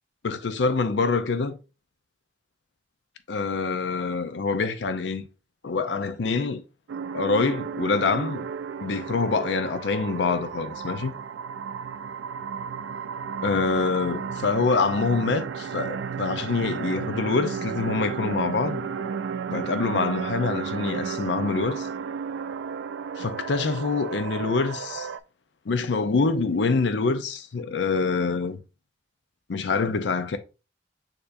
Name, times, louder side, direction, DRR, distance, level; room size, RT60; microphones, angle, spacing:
voice 1, 0.2-1.6 3.3-5.3 5.6-6.6 7.1-8.5 8.8-11.2 13.4-18.8 19.5-21.9 23.2-25.1 25.7-28.6 29.5-30.4, left 4 dB, 70° left, 0.5 m, -25 dB
sound 1, 6.9-25.2, right 6 dB, 90° right, 0.3 m, -33 dB
6.6 x 2.8 x 2.5 m
head